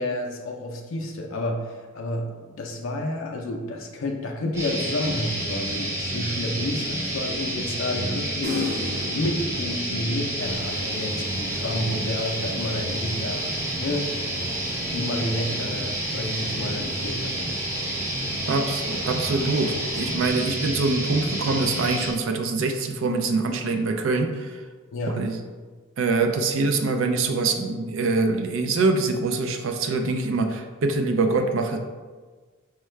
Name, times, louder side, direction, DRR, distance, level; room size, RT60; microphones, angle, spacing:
voice 1, 0.0-8.7 9.1-13.5 13.8-14.1 14.9-17.5 24.9-25.3, left 1 dB, 75° left, 1 dB, 0.4 m, -30 dB
sound 1, 4.5-22.1, right 1 dB, 10° right, 0.5 m, -29 dB
sound 2, 8.4-10.8, left 1 dB, 50° right, 1.0 m, -35 dB
sound 3, 10.4-20.3, equal, 10° left, 0.9 m, -42 dB
voice 2, 18.5-24.5 25.2-25.4 26.0-31.8, right 3 dB, 70° right, 5 dB, 0.4 m, -24 dB
4.4 x 2.2 x 3.2 m, 1.4 s
head